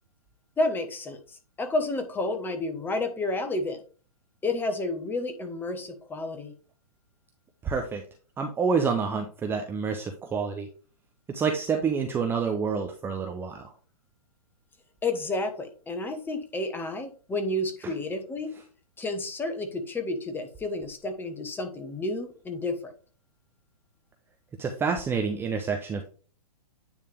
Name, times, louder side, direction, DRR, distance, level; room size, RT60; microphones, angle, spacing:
voice 1, 0.6-3.8 4.4-6.5 15.0-18.5 19.0-22.9, left 2 dB, 10° left, 6 dB, 1.0 m, -30 dB
voice 2, 7.6-8.0 8.4-10.7 11.3-13.7 17.8-17.9 24.6-26.0, right 5 dB, 10° right, 4 dB, 0.6 m, -28 dB
9.3 x 3.4 x 3.4 m, 0.39 s
hypercardioid pair, 125°, 19 cm